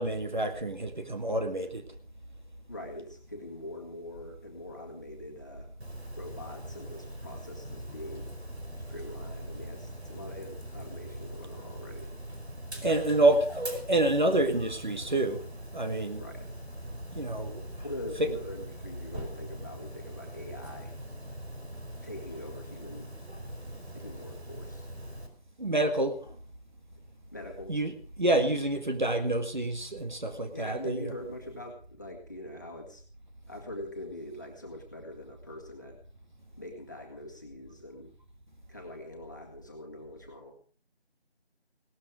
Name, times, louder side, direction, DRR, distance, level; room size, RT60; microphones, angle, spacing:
voice 1, 0.0-1.8 12.8-13.5 13.7-15.4 15.7-16.2 17.2-17.6 25.6-26.2 27.7-31.0, right 2 dB, 45° right, 7 dB, 1.9 m, -27 dB
voice 2, 2.7-5.7 6.2-8.3 8.9-12.1 13.2-13.3 16.2-16.5 17.8-20.9 22.0-23.1 23.9-24.9 27.3-27.7 30.5-33.0 33.5-36.0 36.6-38.1 38.7-40.5, left 1 dB, 15° left, -1 dB, 2.1 m, -43 dB
Dog, 5.8-25.3, right 1 dB, 80° right, 5.0 m, -42 dB
18.0 x 13.0 x 5.0 m, 0.42 s
figure-of-eight pair, 175°, 32 cm